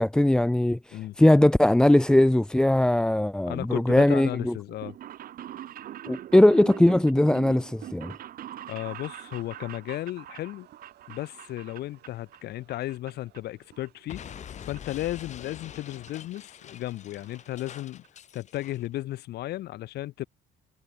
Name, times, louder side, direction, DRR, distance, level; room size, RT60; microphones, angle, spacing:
voice 1, 0.0-4.6 6.1-8.1, left 1 dB, 5° left, 0.4 m, -20 dB
voice 2, 3.5-5.0 8.7-10.7 11.1-14.2 14.7-18.0 18.3-20.3, left 15 dB, 75° left, 2.6 m, -34 dB
sound 1, 4.7-12.4 12.7-13.4 13.7-14.8 15.0-15.1 16.1-16.2 16.3-16.4 16.7-16.8 17.1-17.4 17.8-17.9 18.0-18.1, right 12 dB, 60° right, 1.7 m, -42 dB
sound 2, 8.8-17.6, right 15 dB, 75° right, 7.7 m, -63 dB
Explosion, 14.1-18.9, left 9 dB, 45° left, 1.0 m, -45 dB
cardioid pair, 110°, 17 cm